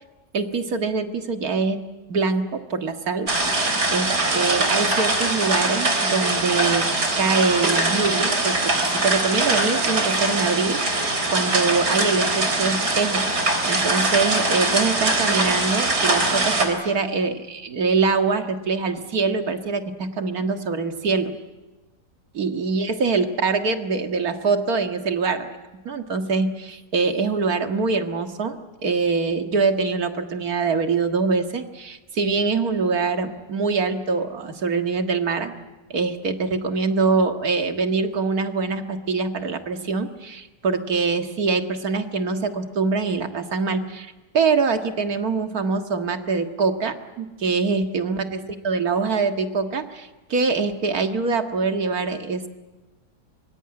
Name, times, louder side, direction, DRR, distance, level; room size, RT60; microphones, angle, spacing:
voice 1, 0.3-1.8 2.1-3.3 3.9-6.8 7.2-10.8 11.3-13.2 13.7-21.3 22.3-25.6 25.9-28.6 28.8-35.5 35.9-52.5, right 4 dB, 65° right, 6 dB, 2.2 m, -24 dB
sound 1, 3.3-16.7, right 2 dB, 85° right, 4.3 m, -22 dB
25.0 x 24.0 x 9.8 m, 1.1 s
omnidirectional pair, 1.7 m